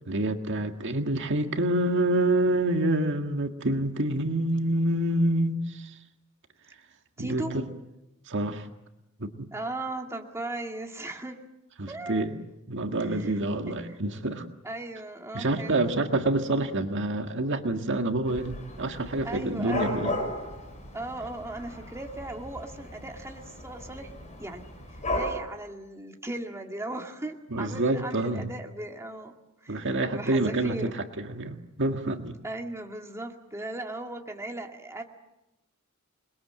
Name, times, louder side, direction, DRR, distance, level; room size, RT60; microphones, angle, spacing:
voice 1, 0.1-5.9 7.2-7.7 8.3-8.7 9.2-9.5 11.8-12.4 12.7-14.4 15.3-20.2 27.5-28.5 29.7-32.4, right 1 dB, 60° right, 5 dB, 1.8 m, -27 dB
voice 2, 7.2-7.6 9.5-11.4 11.9-12.3 13.0-13.4 13.7-14.0 14.6-15.9 19.2-20.2 20.9-24.1 24.4-24.7 25.1-29.3 29.6-31.0 32.4-35.0, right 2 dB, 15° right, 2 dB, 2.1 m, -37 dB
Dog / Cat, 18.3-25.3, left 1 dB, 35° left, 6.5 m, -36 dB
28.0 x 22.0 x 7.7 m, 0.91 s
head